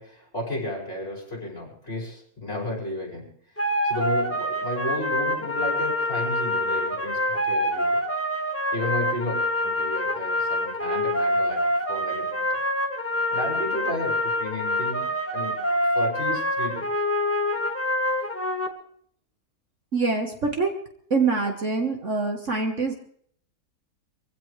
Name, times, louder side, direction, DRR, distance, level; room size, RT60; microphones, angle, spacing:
voice 1, 0.0-3.3 3.6-8.0 8.7-12.6 13.3-15.1 15.3-15.7 15.9-16.9, left 1 dB, 35° left, -2 dB, 5.9 m, -33 dB
sound 1, 3.6-18.7, left 1 dB, 10° left, 1.3 m, -26 dB
voice 2, 19.9-20.7 21.1-22.9, right 4 dB, 50° right, 3 dB, 1.6 m, -24 dB
24.0 x 16.0 x 3.3 m, 0.62 s
omnidirectional pair, 1.8 m